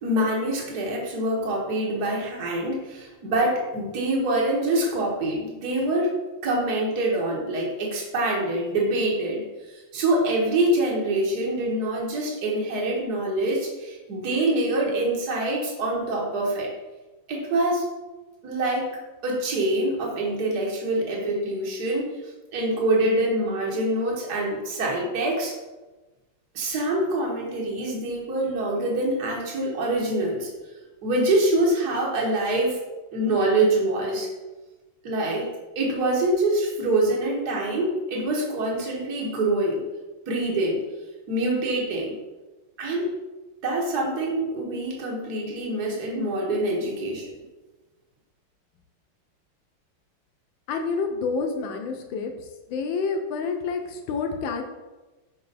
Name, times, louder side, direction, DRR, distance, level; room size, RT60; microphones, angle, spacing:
voice 1, 0.0-16.7 17.3-17.9 18.4-19.0 19.2-22.1 22.5-25.5 26.6-30.5 31.0-32.8 33.1-34.3 35.0-35.5 35.8-39.8 40.3-40.8 41.3-42.2 42.8-43.1 43.6-47.3, right 1 dB, 50° right, -2 dB, 1.8 m, -25 dB
voice 2, 50.7-52.3 52.7-54.6, left 4 dB, 70° left, 4 dB, 1.4 m, -28 dB
5.5 x 5.1 x 4.0 m, 1.1 s
omnidirectional pair, 2.3 m